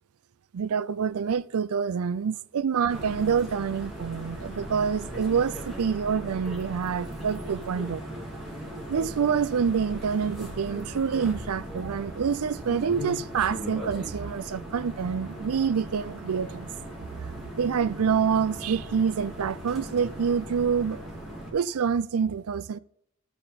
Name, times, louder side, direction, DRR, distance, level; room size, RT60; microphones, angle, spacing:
voice 1, 0.5-8.0 8.9-16.7 17.6-21.0 21.5-22.8, right 6 dB, 85° right, 0.4 m, -27 dB
sound 1, 2.9-21.5, right 1 dB, ahead, 2.5 m, -38 dB
12.0 x 6.9 x 4.1 m
head